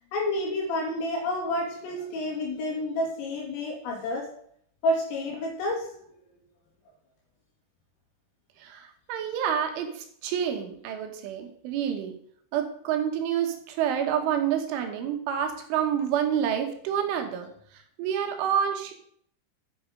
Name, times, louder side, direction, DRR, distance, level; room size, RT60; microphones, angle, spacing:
voice 1, 0.1-4.3 4.8-5.9, left 1 dB, 80° left, -2 dB, 5.4 m, -29 dB
voice 2, 8.6-12.2 12.5-18.9, right 9 dB, 75° right, 5 dB, 3.6 m, -28 dB
10.0 x 7.8 x 5.2 m, 0.64 s
omnidirectional pair, 5.7 m